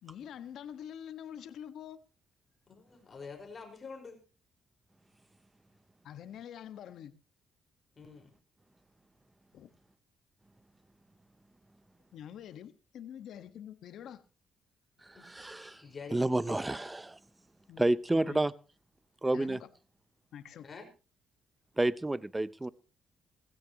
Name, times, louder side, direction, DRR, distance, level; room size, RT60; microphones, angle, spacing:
voice 1, 0.0-2.0 6.0-7.1 9.5-9.7 12.1-14.2 17.7-18.4 19.3-19.7 20.3-20.7, left 9 dB, 75° left, 1.4 m, -46 dB
voice 2, 2.7-4.2 8.0-8.3 15.1-16.6 20.6-20.9, left 4 dB, 35° left, 4.9 m, -47 dB
voice 3, 15.1-15.8 16.1-17.2 17.8-18.5 19.2-19.6 21.8-22.7, right 2 dB, 15° right, 0.7 m, -30 dB
17.5 x 16.0 x 3.0 m
cardioid pair, 90°, 0 cm